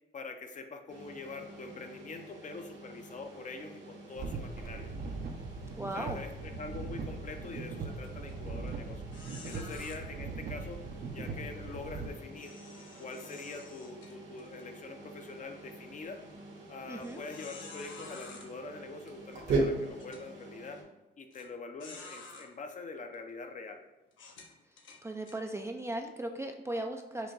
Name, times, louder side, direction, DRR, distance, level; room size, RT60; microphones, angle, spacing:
voice 1, 0.1-4.9 5.9-10.8 11.1-12.5 13.0-16.2 16.7-20.8 21.2-23.8, left 3 dB, 40° left, 5 dB, 0.6 m, -44 dB
sound 1, 0.9-20.8, right 2 dB, 65° right, 1.3 m, -42 dB
sound 2, 4.2-12.1, right 4 dB, 50° right, 0.7 m, -40 dB
voice 2, 5.8-6.2 16.9-17.2 25.0-27.3, right 1 dB, 15° right, 4 dB, 0.4 m, -37 dB
sound 3, 8.0-8.3 8.7-8.8 9.1-10.0 12.3-14.6 15.1-15.3 15.9-16.0 17.0-18.5 19.3-19.4 20.0-20.2 21.3-21.4 21.8-22.5 23.1-23.3 24.1-25.4, left 4 dB, 75° left, 1.0 m, -50 dB
6.0 x 2.2 x 3.9 m, 1.1 s
cardioid pair, 90°, 20 cm